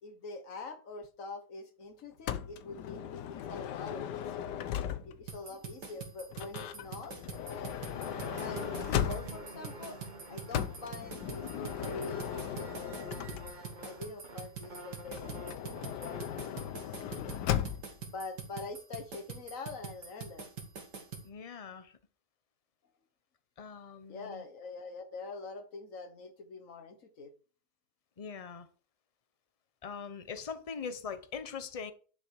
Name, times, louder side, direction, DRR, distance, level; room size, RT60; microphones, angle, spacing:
voice 1, 0.0-4.6 5.0-7.7 8.3-10.0 10.3-12.9 13.8-17.4 18.1-20.5 24.1-27.3, left 3 dB, 55° left, 1.6 m, -45 dB
Motor vehicle (road) / Sliding door, 2.3-5.3 6.3-9.6 10.5-13.8 15.0-18.0, left 10 dB, 90° left, 1.4 m, -37 dB
sound 1, 5.3-21.3, right 5 dB, 80° right, 2.5 m, -44 dB
sound 2, 7.5-16.4, equal, 30° right, 1.4 m, -47 dB
voice 2, 21.2-22.0 23.6-24.4 28.2-28.7 29.8-31.9, left 6 dB, 30° left, 0.8 m, -42 dB
11.5 x 6.7 x 4.8 m
omnidirectional pair, 1.8 m